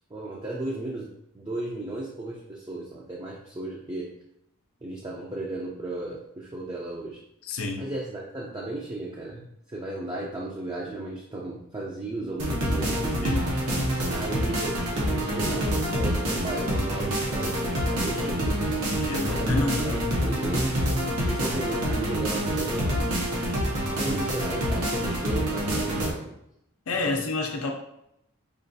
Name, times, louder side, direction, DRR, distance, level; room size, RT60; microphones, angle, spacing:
voice 1, 0.1-4.1 4.8-7.2 7.8-13.4 14.1-18.7 19.3-20.9 21.3-23.0 23.9-26.3 26.9-27.0, right 2 dB, 20° right, -4 dB, 0.4 m, -35 dB
voice 2, 7.4-7.9 13.2-13.4 19.0-19.8 26.9-27.7, left 3 dB, 70° left, 2 dB, 0.5 m, -28 dB
sound 1, 12.4-26.1, equal, 85° right, 0.9 m, -27 dB
5.0 x 2.3 x 2.6 m, 0.78 s
head